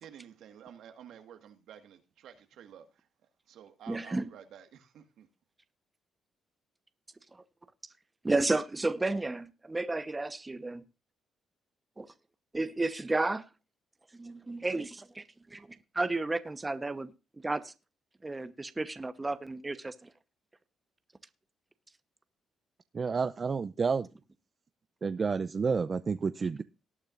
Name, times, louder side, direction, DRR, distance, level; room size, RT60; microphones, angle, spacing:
voice 1, 0.0-2.9 3.5-5.3, right 9 dB, 80° right, 1.7 m, -51 dB
voice 2, 3.9-4.3 8.2-10.8 12.0-12.1 12.5-13.4 14.1-15.7 15.9-17.1 17.4-17.7 18.2-20.1, right 2 dB, 20° right, 1.0 m, -32 dB
voice 3, 22.9-24.1 25.0-26.6, right 5 dB, 40° right, 0.5 m, -30 dB
19.0 x 8.8 x 2.6 m
cardioid pair, 90°, 0 cm